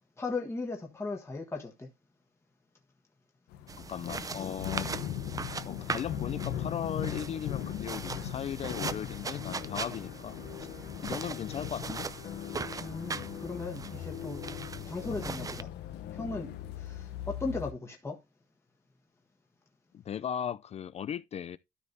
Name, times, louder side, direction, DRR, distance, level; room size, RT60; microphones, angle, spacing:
voice 1, 0.2-1.9 12.8-14.4 14.9-15.7 16.1-18.2, left 3 dB, 15° left, 1.4 m, -37 dB
sound 1, 3.5-17.7, left 10 dB, 90° left, 1.0 m, -40 dB
sound 2, 3.7-15.6, right 5 dB, 20° right, 0.5 m, -40 dB
voice 2, 3.8-5.0 5.6-10.4 11.0-12.1 19.9-21.6, left 9 dB, 40° left, 0.4 m, -37 dB
sound 3, 4.0-17.7, left 11 dB, 65° left, 0.8 m, -45 dB
13.0 x 5.2 x 2.7 m
cardioid pair, 110°, 17 cm